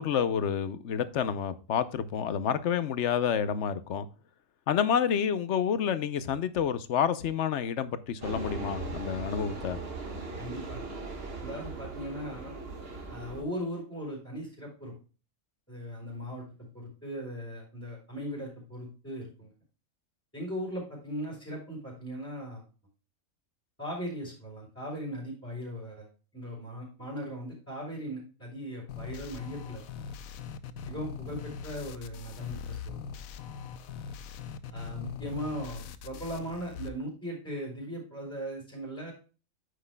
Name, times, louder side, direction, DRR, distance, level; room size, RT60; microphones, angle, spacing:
voice 1, 0.0-4.1 4.7-9.8, left 8 dB, 65° left, 1.0 m, -29 dB
sound 1, 8.2-13.4, right 3 dB, 45° right, 1.8 m, -39 dB
voice 2, 10.4-10.8 11.4-12.6 13.1-14.9 15.7-19.5 20.3-22.6 23.8-26.1 26.3-29.8 30.8-33.0 34.7-39.1, equal, 10° left, 4.0 m, -38 dB
sound 2, 28.9-36.9, left 6 dB, 90° left, 1.1 m, -41 dB
9.8 x 8.2 x 2.2 m
omnidirectional pair, 1.4 m